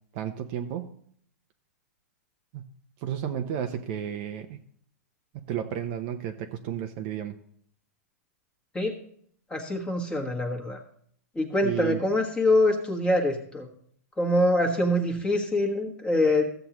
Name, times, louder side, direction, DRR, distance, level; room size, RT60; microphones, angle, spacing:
voice 1, 0.1-0.9 2.5-2.7 3.0-4.6 5.5-7.4 11.6-12.0, right 10 dB, 40° right, 5 dB, 0.7 m, -32 dB
voice 2, 9.5-10.8 11.3-13.7 14.2-16.5, left 1 dB, 10° left, 2 dB, 1.4 m, -24 dB
14.5 x 7.8 x 3.0 m, 0.62 s
hypercardioid pair, 145°, 9 cm